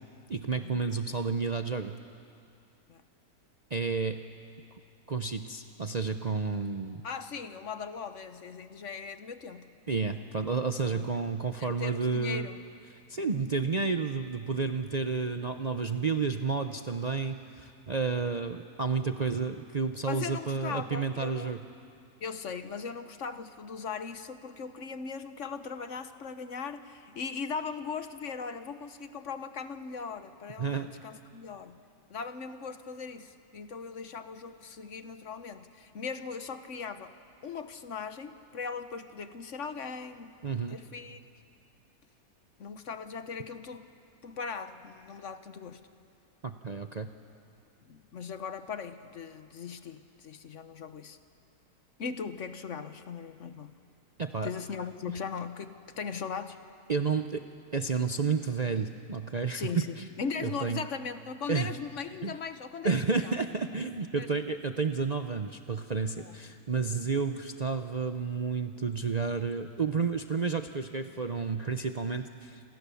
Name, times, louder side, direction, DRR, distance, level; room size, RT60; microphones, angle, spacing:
voice 1, 0.3-2.0 3.7-4.2 5.1-7.0 9.9-12.5 13.1-21.6 30.6-30.9 40.4-40.8 46.4-47.1 54.2-54.5 56.9-57.4 57.7-59.7 60.0-60.1 60.4-60.8 61.5-61.7 62.2-62.4 62.8-72.6, right 4 dB, 35° right, 6 dB, 0.7 m, -31 dB
voice 2, 7.0-9.7 10.8-11.1 11.6-12.6 20.1-21.5 22.2-31.8 32.1-37.1 37.4-41.2 42.6-43.8 44.2-45.8 47.8-51.2 52.0-53.7 54.4-56.6 59.5-63.3 64.2-64.3 66.2-66.4, left 5 dB, 55° left, 10 dB, 1.3 m, -39 dB
28.5 x 27.5 x 7.1 m, 2.4 s
omnidirectional pair, 1.6 m